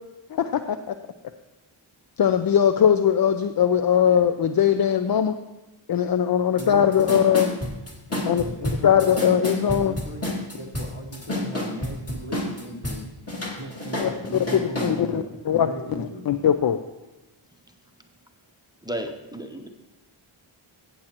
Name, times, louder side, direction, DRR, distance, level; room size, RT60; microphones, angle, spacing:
voice 1, 0.3-0.9 2.2-5.4 5.9-7.5 8.3-8.4 8.8-9.9 14.0-14.1 14.8-15.7 16.0-16.8, left 8 dB, 50° left, 9 dB, 0.4 m, -20 dB
voice 2, 6.5-7.2 8.1-9.2 9.6-13.1 13.4-16.3, equal, 65° left, 2 dB, 1.5 m, -37 dB
sound 1, 6.6-6.7 6.9-13.0 13.3-14.9, left 1 dB, 30° left, 2.1 m, -29 dB
voice 3, 18.8-19.7, right 1 dB, 10° right, 5 dB, 0.7 m, -33 dB
15.0 x 7.5 x 2.9 m, 1.0 s
wide cardioid pair, 80°, 50 cm